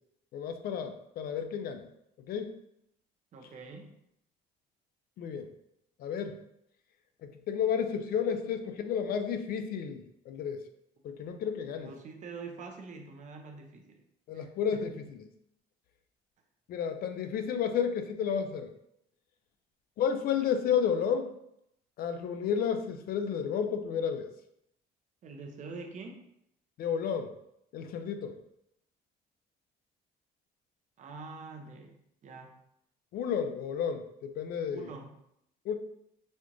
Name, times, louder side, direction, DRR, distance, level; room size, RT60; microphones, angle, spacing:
voice 1, 0.3-1.9 2.3-2.6 5.2-5.5 6.0-6.4 7.2-10.6 11.0-11.9 14.3-14.9 16.7-18.7 20.0-21.3 22.0-24.3 26.8-27.3 27.7-28.4 33.1-34.8 35.7-35.8, left 7 dB, 60° left, 7 dB, 0.4 m, -31 dB
voice 2, 3.3-4.0 11.0-11.1 11.7-14.0 14.3-14.5 25.2-26.3 31.0-32.6 34.7-35.2, right 4 dB, 45° right, 3 dB, 0.6 m, -45 dB
4.1 x 2.4 x 3.0 m, 0.76 s
cardioid pair, 110°, 17 cm